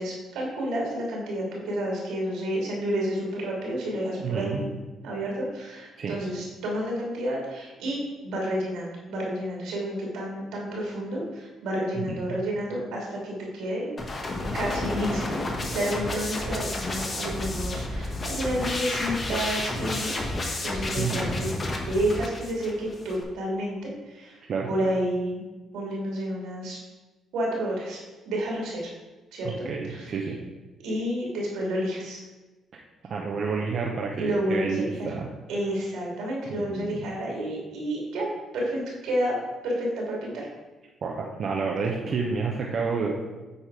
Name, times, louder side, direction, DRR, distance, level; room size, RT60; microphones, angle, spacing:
voice 1, 0.0-4.7 5.0-13.9 14.5-15.3 15.7-21.5 21.9-24.4 24.6-25.4 25.7-26.8 27.3-28.9 29.3-30.3 30.8-32.2 34.2-35.1 35.5-38.3 38.5-39.4 39.6-40.5, equal, 90° right, -2 dB, 2.6 m, -30 dB
voice 2, 4.2-4.6 6.0-6.1 12.1-12.4 21.0-21.3 24.5-24.7 29.4-30.4 33.0-35.3 36.5-37.0 41.0-43.1, right 5 dB, 55° right, -1 dB, 0.8 m, -29 dB
sound 1, 14.0-23.2, left 2 dB, 35° left, 1.2 m, -31 dB
8.5 x 4.2 x 4.7 m, 1.2 s
cardioid pair, 90°, 0 cm